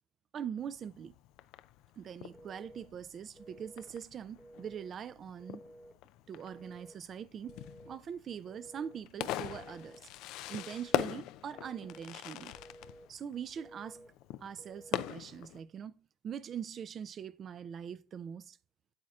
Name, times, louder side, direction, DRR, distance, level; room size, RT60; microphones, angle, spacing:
voice 1, 0.3-1.2 2.0-5.6 6.3-7.6 7.8-10.1 10.5-12.5 13.1-14.1 14.4-18.6, right 8 dB, 45° right, 0.4 m, -42 dB
Fireworks, 0.6-15.6, left 14 dB, 70° left, 0.4 m, -42 dB
Telephone, 2.3-2.9 3.4-3.9 4.4-5.0 5.4-6.0 6.4-7.0 7.4-8.0 8.5-9.0 9.5-10.1 10.5-11.1 11.5-12.1 12.5-13.1 13.6-14.1 14.6-15.2, right 1 dB, 5° right, 1.1 m, -54 dB
8.7 x 7.4 x 2.4 m
supercardioid pair, 90°, 0 cm